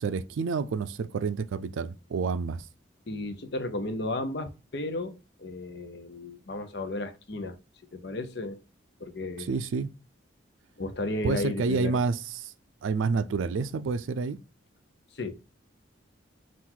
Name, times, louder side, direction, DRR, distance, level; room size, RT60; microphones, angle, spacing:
voice 1, 0.0-2.7 9.4-9.9 11.2-12.5 12.8-14.4, right 4 dB, 85° right, 0.4 m, -29 dB
voice 2, 3.1-7.6 7.9-8.6 9.0-9.5 10.8-12.0 15.1-15.5, left 2 dB, 55° left, 0.6 m, -34 dB
3.8 x 2.5 x 4.3 m
head